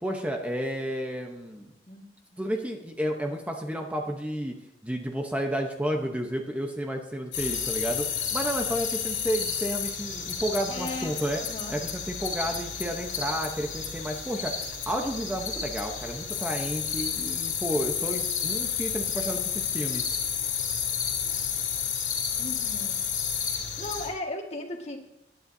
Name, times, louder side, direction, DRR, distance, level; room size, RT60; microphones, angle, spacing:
voice 1, 0.0-1.7 2.4-4.5 4.8-11.4 11.7-20.2, equal, 10° right, 2 dB, 0.9 m, -31 dB
sound 1, 7.3-24.1, left 7 dB, 80° left, 2.9 m, -31 dB
voice 2, 10.7-11.8 22.4-23.0 23.4-25.0, left 2 dB, 40° left, 2 dB, 1.8 m, -37 dB
19.5 x 10.0 x 2.7 m, 0.85 s
head